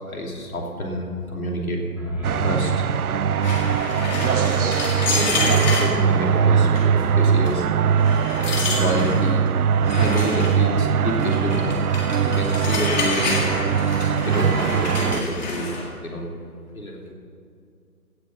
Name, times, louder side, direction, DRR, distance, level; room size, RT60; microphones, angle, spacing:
voice 1, 0.1-1.8 2.4-2.7 4.3-4.8 5.1-7.7 8.4-9.5 9.9-11.7 12.2-13.7 14.2-16.3 16.7-17.1, left 1 dB, 65° left, 0 dB, 2.9 m, -28 dB
sound 1, 1.7-5.8, left 1 dB, 5° right, 1.5 m, -37 dB
sound 2, 2.2-15.2, right 7 dB, 70° right, 0.5 m, -21 dB
sound 3, 3.4-5.9 6.8-7.0 7.5-7.6 8.0-9.2 9.8-10.6 11.2-15.9, left 3 dB, 30° left, 1.9 m, -28 dB
16.5 x 6.6 x 7.0 m, 2.4 s
figure-of-eight pair, 150°, 46 cm